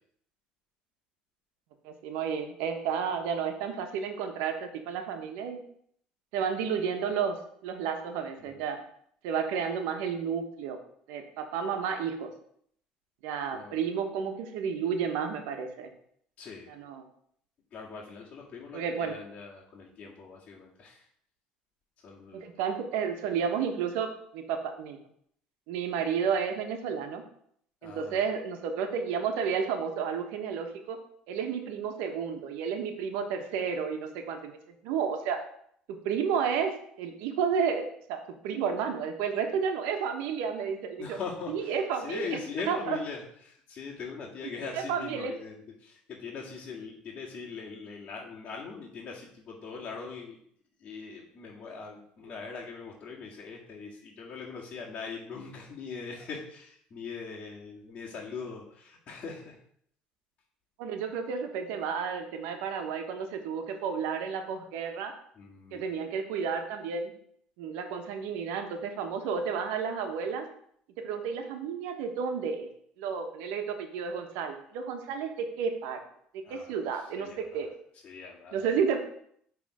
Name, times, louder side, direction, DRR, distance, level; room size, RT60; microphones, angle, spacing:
voice 1, 1.8-5.6 6.3-7.4 7.6-8.8 9.2-10.8 11.1-12.3 13.2-15.9 16.8-17.0 18.7-19.1 22.3-25.0 25.7-27.2 27.8-31.0 31.3-34.6 34.8-35.4 35.9-36.7 37.0-38.2 38.4-41.2 41.5-42.3 42.7-43.0 44.7-45.3 60.8-65.1 65.7-67.1 67.6-70.5 71.0-72.7 73.0-76.0 76.3-77.7 78.5-79.0, right 6 dB, 85° right, 5 dB, 1.2 m, -31 dB
voice 2, 16.4-16.7 17.7-21.1 22.0-22.5 27.8-28.2 41.0-50.4 50.8-59.6 65.3-65.9 76.4-77.7 78.0-78.7, left 5 dB, 40° left, -7 dB, 1.9 m, -41 dB
8.7 x 3.5 x 5.0 m, 0.66 s
cardioid pair, 110°, 3 cm